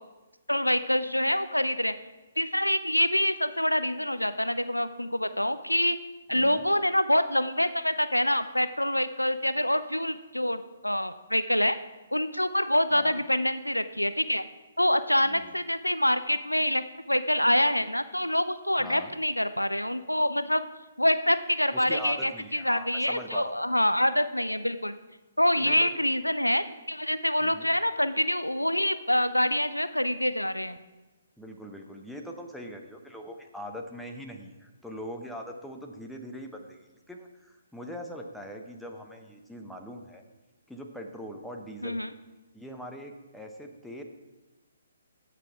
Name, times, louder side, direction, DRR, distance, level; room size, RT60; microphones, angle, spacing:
voice 1, 0.5-1.9 2.4-6.0 6.3-11.8 12.1-14.5 14.8-20.7 21.0-25.0 25.4-30.8 41.8-42.1, left 1 dB, 90° left, 12 dB, 0.5 m, -26 dB
voice 2, 6.3-6.7 12.9-13.2 15.2-15.5 18.8-19.1 21.7-23.5 25.6-25.9 27.4-27.7 31.4-40.2 40.7-42.1 42.5-44.0, equal, ahead, 2 dB, 0.9 m, -42 dB
16.5 x 5.9 x 4.7 m, 1.1 s
figure-of-eight pair, 130°, 0 cm